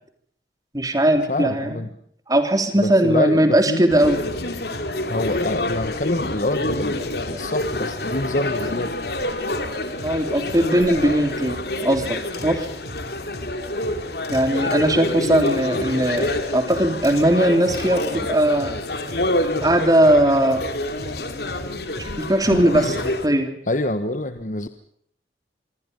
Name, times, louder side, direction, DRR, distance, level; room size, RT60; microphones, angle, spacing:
voice 1, 0.7-1.8 2.3-4.2 10.0-12.2 12.4-12.6 14.3-18.8 19.6-20.6 22.0-23.5, right 1 dB, 20° right, 7 dB, 3.3 m, -19 dB
voice 2, 1.3-1.9 2.7-4.2 5.1-8.9 22.8-23.0 23.7-24.7, left 1 dB, 45° left, 10 dB, 1.4 m, -26 dB
sound 1, 3.9-23.3, left 1 dB, 60° left, 3.1 m, -27 dB
26.5 x 23.5 x 5.4 m, 0.63 s
head